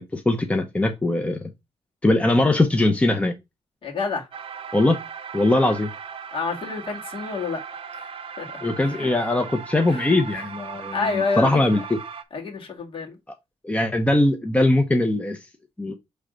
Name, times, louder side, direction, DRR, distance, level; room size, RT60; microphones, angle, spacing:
voice 1, 0.0-1.5 2.0-3.3 4.7-5.0 5.3-5.9 8.6-12.0 13.6-15.4 15.8-16.0, left 2 dB, 10° left, 0.7 m, -21 dB
voice 2, 3.8-4.3 6.3-7.6 7.9-8.5 8.8-9.1 9.9-10.4 10.9-11.7 12.3-13.2, left 4 dB, 50° left, 2.0 m, -29 dB
sound 1, 4.3-12.2, right 6 dB, 55° right, 0.7 m, -37 dB
6.2 x 3.3 x 5.1 m
cardioid pair, 115°, 11 cm